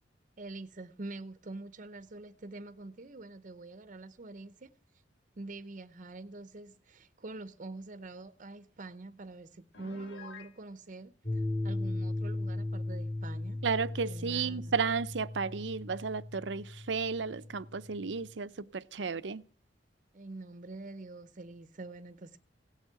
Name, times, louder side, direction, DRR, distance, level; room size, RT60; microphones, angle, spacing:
voice 1, 0.4-4.7 5.4-13.6 14.1-14.7 20.1-22.4, right 2 dB, 45° right, 0.7 m, -45 dB
Piano, 9.7-10.6, left 4 dB, 75° left, 1.9 m, -49 dB
sound 1, 11.2-18.3, left 2 dB, 40° left, 2.9 m, -37 dB
voice 2, 13.6-19.4, right 5 dB, 80° right, 0.7 m, -33 dB
17.0 x 7.4 x 8.8 m
head